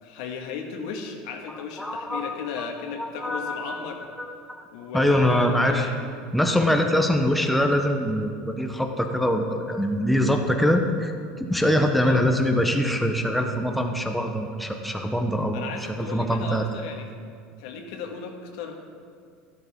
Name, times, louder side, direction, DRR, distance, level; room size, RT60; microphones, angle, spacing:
voice 1, 0.0-4.1 4.7-6.0 11.9-12.2 15.5-17.0 17.6-18.7, left 6 dB, 85° left, 3 dB, 1.6 m, -36 dB
voice 2, 1.8-2.6 3.0-3.8 4.2-4.6 4.9-5.9 6.3-11.1 11.4-15.6 15.9-16.7, equal, ahead, 3 dB, 0.7 m, -23 dB
13.5 x 12.0 x 3.6 m, 2.2 s
cardioid pair, 155°, 3 cm